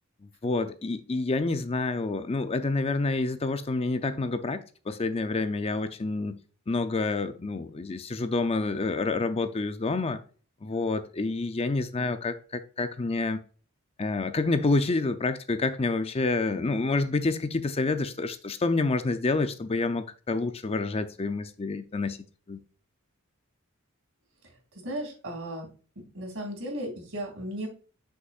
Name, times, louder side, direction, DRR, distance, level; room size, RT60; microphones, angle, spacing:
voice 1, 0.4-6.4 6.7-10.2 10.6-13.4 14.0-22.2 22.5-22.6, left 3 dB, 30° left, 0.5 m, -28 dB
voice 2, 24.8-25.7 26.1-27.7, right 1 dB, 65° right, 3.0 m, -35 dB
8.0 x 6.4 x 2.4 m
head